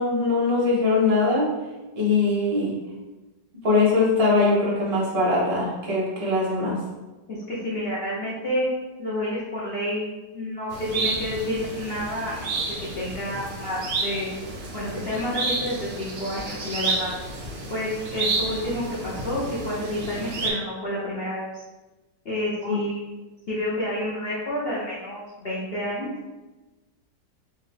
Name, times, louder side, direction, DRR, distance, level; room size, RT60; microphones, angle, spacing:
voice 1, 0.0-1.5 2.0-2.7 3.6-6.8 22.6-22.8, left 3 dB, 35° right, -4 dB, 0.6 m, -21 dB
voice 2, 7.3-8.7 9.0-10.1 10.3-12.6 13.0-14.3 14.7-17.1 17.7-21.5 22.2-23.2 23.5-26.4, left 1 dB, 55° left, -7 dB, 0.7 m, -29 dB
sound 1, 10.7-20.5, right 3 dB, 90° right, 0.5 m, -31 dB
4.4 x 2.4 x 3.2 m, 1.1 s
omnidirectional pair, 1.9 m